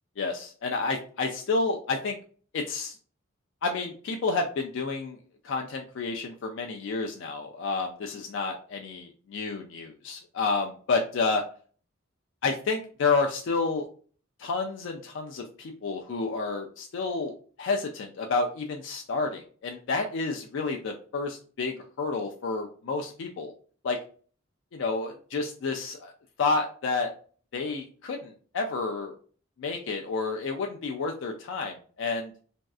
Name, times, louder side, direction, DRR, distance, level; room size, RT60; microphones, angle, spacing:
voice 1, 0.2-2.2 2.5-3.0 3.6-5.2 5.4-11.4 12.4-13.9 14.4-23.5 23.8-24.0 24.7-26.1 26.4-27.1 27.5-29.1 29.6-32.3, left 4 dB, 60° left, 3 dB, 0.4 m, -30 dB
3.0 x 2.6 x 2.3 m, 0.42 s
head